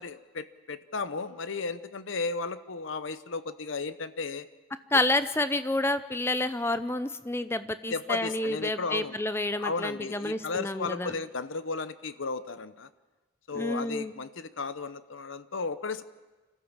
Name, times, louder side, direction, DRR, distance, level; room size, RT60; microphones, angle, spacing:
voice 1, 0.0-4.5 4.9-5.0 7.9-9.2 9.6-12.9 13.5-16.0, left 4 dB, 65° left, 13 dB, 0.8 m, -34 dB
voice 2, 4.9-11.1 13.5-14.1, left 2 dB, 10° left, 12 dB, 0.7 m, -29 dB
25.5 x 15.0 x 7.4 m, 1.3 s
head